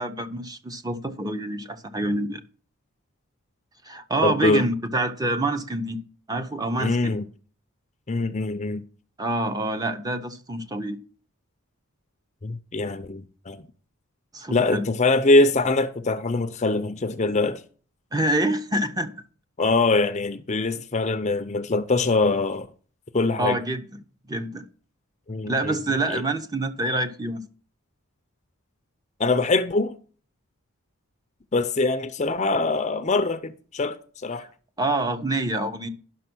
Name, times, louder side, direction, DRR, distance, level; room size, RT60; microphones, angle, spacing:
voice 1, 0.0-2.4 3.8-6.0 6.3-7.2 9.2-11.0 14.3-14.8 18.1-19.1 23.4-23.8 24.3-24.6 25.5-27.4 34.4-34.5 34.8-35.9, right 2 dB, 15° right, 0.8 m, -26 dB
voice 2, 4.2-4.7 6.8-7.2 8.1-8.8 12.4-13.6 14.5-17.6 19.6-22.7 23.1-23.6 25.3-25.8 26.1-26.2 29.2-30.0 31.5-34.5, left 3 dB, 30° left, 0.6 m, -23 dB
11.0 x 6.1 x 6.1 m
head